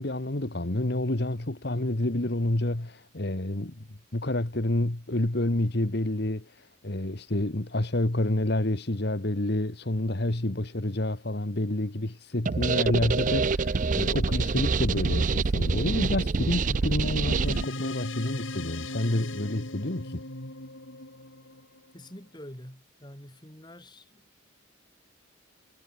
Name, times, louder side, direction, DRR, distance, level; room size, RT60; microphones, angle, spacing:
voice 1, 0.0-20.2, left 1 dB, 50° left, 1.5 m, -29 dB
sound 1, 12.5-17.6, right 4 dB, 40° right, 0.5 m, -26 dB
sound 2, 17.3-22.1, left 2 dB, 75° left, 6.5 m, -38 dB
voice 2, 21.9-24.2, left 1 dB, 20° left, 4.6 m, -46 dB
head